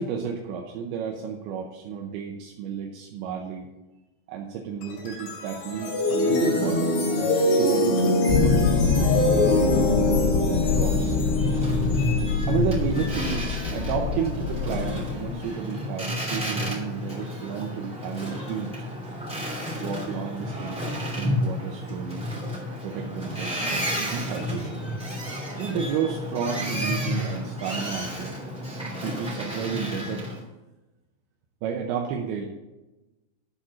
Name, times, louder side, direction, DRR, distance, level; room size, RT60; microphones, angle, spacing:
voice 1, 0.0-3.7 4.3-9.8 10.4-11.2 12.5-18.9 19.8-22.3 22.8-24.8 25.6-28.4 29.0-30.3 31.6-32.5, right 6 dB, 75° right, 0 dB, 2.4 m, -32 dB
sound 1, 4.8-14.1, left 1 dB, 65° left, 4.2 m, -25 dB
sound 2, 8.3-15.3, left 5 dB, 85° left, 2.9 m, -25 dB
Boat Water vehicle, 10.6-30.4, left 1 dB, ahead, 1.7 m, -31 dB
12.5 x 4.3 x 6.2 m, 1.0 s
omnidirectional pair, 5.2 m